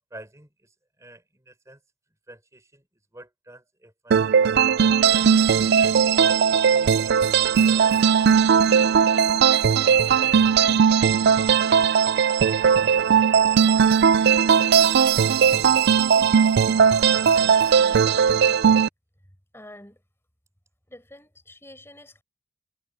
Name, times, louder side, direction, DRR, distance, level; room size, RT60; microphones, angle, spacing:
voice 1, 0.1-1.8 2.3-2.8 3.1-6.0 6.7-7.4 7.7-9.0 9.4-10.4, right 1 dB, 15° right, 5.1 m, -49 dB
sound 1, 4.1-18.9, right 7 dB, 50° right, 0.3 m, -18 dB
voice 2, 17.1-18.0 19.5-20.0 20.9-22.2, left 1 dB, 10° left, 4.8 m, -47 dB
head